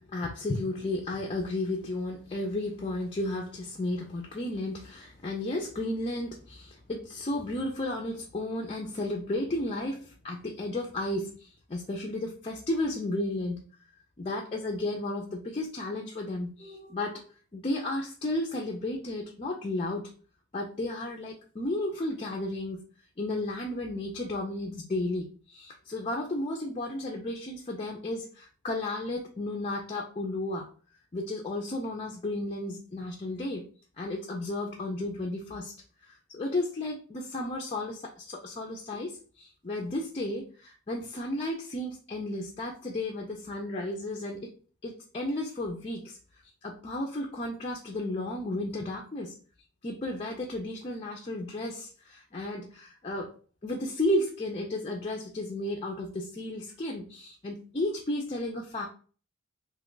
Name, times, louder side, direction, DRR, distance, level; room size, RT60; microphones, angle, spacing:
voice 1, 0.1-13.6 14.2-17.2 17.5-20.1 20.5-22.8 23.2-30.7 31.1-33.7 34.0-35.7 36.0-44.5 44.8-46.2 46.6-49.3 49.8-53.3 53.6-58.9, left 1 dB, 25° left, 1 dB, 0.4 m, -33 dB
2.8 x 2.2 x 3.8 m, 0.40 s
head